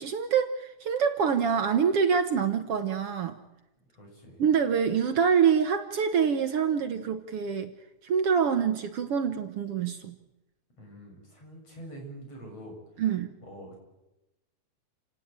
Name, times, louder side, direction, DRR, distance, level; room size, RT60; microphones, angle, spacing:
voice 1, 0.0-3.4 4.4-7.7 8.0-10.2 13.0-13.3, right 7 dB, 60° right, 8 dB, 2.0 m, -25 dB
voice 2, 3.9-4.4 10.8-12.8 13.4-13.8, right 1 dB, 55° left, 2 dB, 8.4 m, -45 dB
29.0 x 18.0 x 9.0 m, 0.96 s
omnidirectional pair, 3.3 m